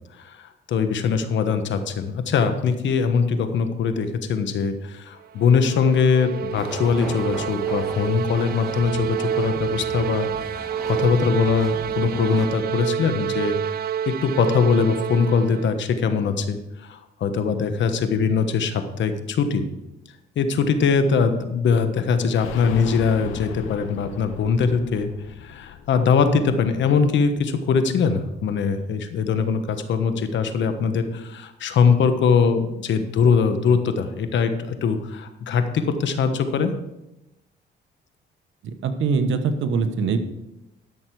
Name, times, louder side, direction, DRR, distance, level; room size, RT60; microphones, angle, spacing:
voice 1, 0.2-19.6 20.4-25.1 25.4-36.7, left 5 dB, 70° left, 8 dB, 1.2 m, -22 dB
sound 1, 5.2-15.8, right 9 dB, 50° right, 0.4 m, -28 dB
sound 2, 6.5-12.5, equal, ahead, 2.3 m, -38 dB
sound 3, 22.4-28.0 28.3-28.4 28.7-28.8, left 9 dB, 85° left, 0.8 m, -38 dB
voice 2, 38.6-40.2, right 5 dB, 75° right, 8 dB, 1.2 m, -23 dB
12.5 x 6.5 x 4.7 m, 0.93 s
cardioid pair, 90°, 20 cm